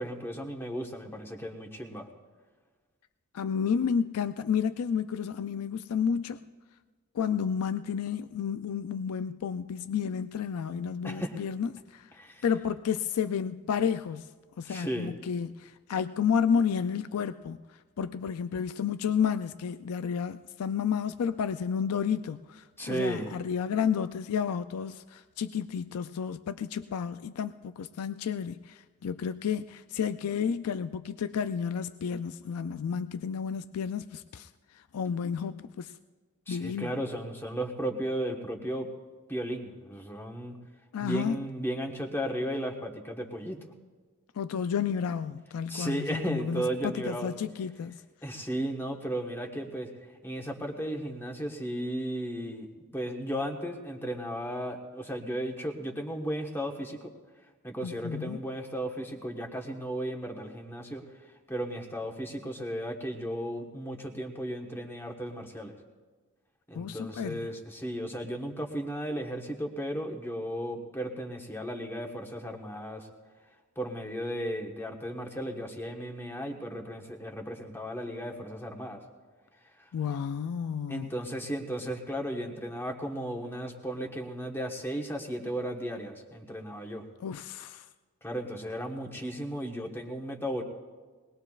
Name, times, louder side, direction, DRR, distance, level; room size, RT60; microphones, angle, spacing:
voice 1, 0.0-2.1 11.0-11.4 12.1-12.4 14.7-15.1 22.8-23.3 36.5-38.9 39.3-40.6 41.0-43.6 45.7-47.3 48.2-49.9 50.2-52.7 52.9-57.0 57.6-61.0 61.5-65.8 66.7-73.1 73.8-79.0 80.9-87.0 88.2-90.6, equal, 10° left, 1.3 m, -35 dB
voice 2, 3.3-6.4 7.2-12.0 12.4-14.3 14.6-17.6 18.0-34.5 34.9-35.9 36.5-36.9 40.9-41.4 44.4-47.9 57.8-58.4 66.7-67.5 79.9-81.1 87.2-87.8, left 7 dB, 80° left, 0.4 m, -31 dB
21.5 x 19.5 x 2.4 m
head